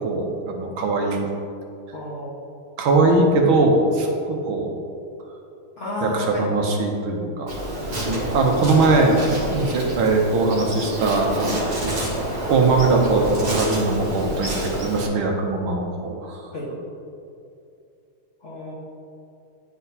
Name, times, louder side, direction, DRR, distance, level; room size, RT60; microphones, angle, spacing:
voice 1, 0.0-1.3 2.8-4.8 6.0-7.5 7.8-7.9 8.3-11.8 12.5-16.5, right 3 dB, 75° right, 1 dB, 1.5 m, -21 dB
voice 2, 1.9-2.3 5.8-6.5 9.6-9.8 16.5-16.7 18.4-18.7, left 2 dB, 40° left, -7 dB, 1.3 m, -32 dB
Insect, 7.5-15.1, right 1 dB, 50° right, 1.9 m, -27 dB
10.5 x 4.1 x 2.7 m, 2.6 s
omnidirectional pair, 2.3 m